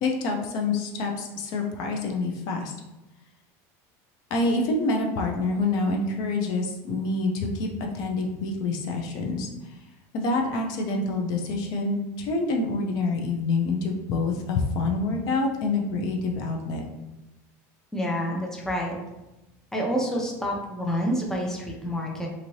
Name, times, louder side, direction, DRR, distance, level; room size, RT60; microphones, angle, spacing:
voice 1, 0.0-2.7 4.3-9.8 10.1-16.8, left 3 dB, 55° left, 2 dB, 0.5 m, -27 dB
voice 2, 17.9-19.0 19.7-22.3, equal, 5° left, -1 dB, 0.5 m, -28 dB
2.7 x 2.6 x 3.0 m, 0.99 s
supercardioid pair, 135°, 8 cm